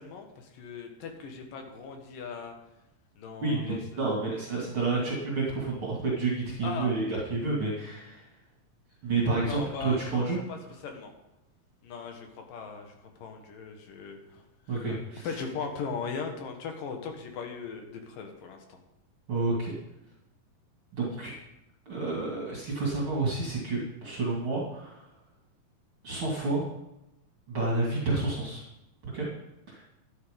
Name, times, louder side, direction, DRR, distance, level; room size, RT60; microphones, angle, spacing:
voice 1, 0.0-2.5 3.2-4.2 6.6-6.9 9.4-10.6 10.8-11.1 11.8-14.8 15.2-18.8, left 5 dB, 75° left, 4 dB, 3.2 m, -39 dB
voice 2, 3.4-8.3 9.0-10.4 14.7-15.4 19.3-19.7 20.9-21.3 21.9-25.0 26.0-26.7 27.5-28.6 29.0-29.3 29.7-29.8, right 3 dB, 40° right, -4 dB, 2.9 m, -30 dB
12.5 x 9.9 x 5.2 m, 0.91 s
omnidirectional pair, 4.0 m